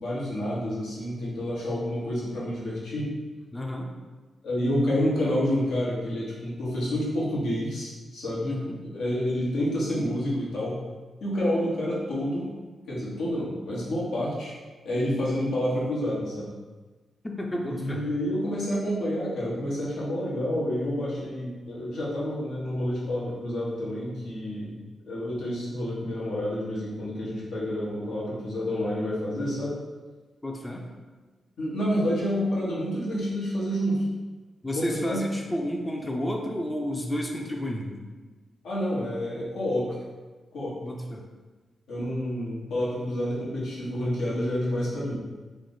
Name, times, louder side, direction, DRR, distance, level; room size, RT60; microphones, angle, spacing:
voice 1, 0.0-3.1 4.4-8.5 8.9-10.8 11.2-12.5 12.9-14.5 14.8-16.5 17.7-24.8 25.1-29.7 31.6-34.0 34.7-35.2 38.6-40.0 40.5-40.7 41.9-45.2, equal, 85° left, -7 dB, 1.0 m, -29 dB
voice 2, 3.5-3.9 8.4-8.8 17.2-18.1 30.4-30.9 34.6-38.0 40.8-41.3, equal, 15° left, 1 dB, 0.4 m, -31 dB
3.2 x 2.0 x 3.9 m, 1.3 s
cardioid pair, 85°, 0 cm